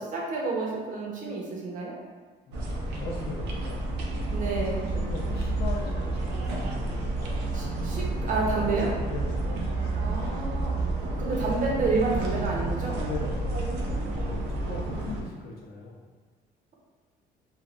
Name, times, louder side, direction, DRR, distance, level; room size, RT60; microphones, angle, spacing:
voice 1, 0.0-1.9 4.3-4.9 7.5-8.9 9.9-10.7 11.0-13.0, right 3 dB, 50° right, -3 dB, 0.8 m, -29 dB
voice 2, 2.5-3.9 4.9-6.8 9.1-9.5 13.0-16.0, left 4 dB, 70° left, -3 dB, 0.7 m, -39 dB
sound 1, 2.5-15.2, right 2 dB, 85° right, 0.5 m, -30 dB
3.1 x 2.3 x 2.4 m, 1.4 s
cardioid pair, 110°, 17 cm